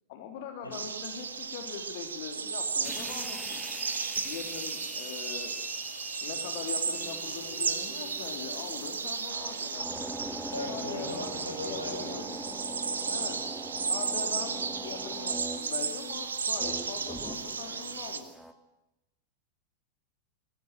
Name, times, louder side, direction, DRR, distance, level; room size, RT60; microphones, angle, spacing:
voice 1, 0.1-3.6 4.2-5.5 6.2-10.0 10.6-12.6 13.1-13.4 13.9-18.2, left 7 dB, 50° left, 4 dB, 3.4 m, -42 dB
sound 1, 0.7-18.2, right 5 dB, 70° right, 1.7 m, -34 dB
sound 2, 2.8-18.5, equal, ahead, 2.4 m, -43 dB
voice 2, 10.5-12.4, left 1 dB, 85° left, 4 dB, 5.6 m, -39 dB
22.5 x 17.5 x 9.0 m, 0.93 s
figure-of-eight pair, 90°, 0 cm